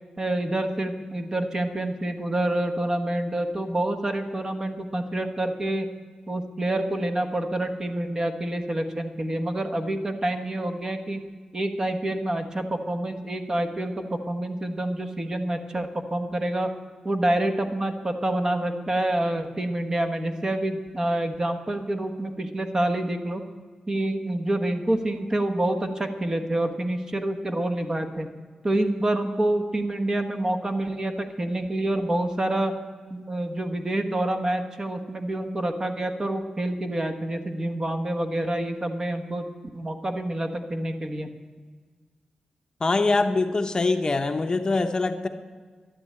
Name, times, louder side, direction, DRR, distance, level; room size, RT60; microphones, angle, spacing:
voice 1, 0.2-5.9 6.3-11.2 11.5-16.7 17.0-23.4 23.9-28.3 28.6-32.7 33.1-39.5 39.7-41.3, right 1 dB, 30° right, 6 dB, 1.2 m, -27 dB
voice 2, 42.8-45.3, left 3 dB, 35° left, 7 dB, 0.8 m, -23 dB
11.5 x 11.0 x 8.7 m, 1.5 s
wide cardioid pair, 110°, 2 cm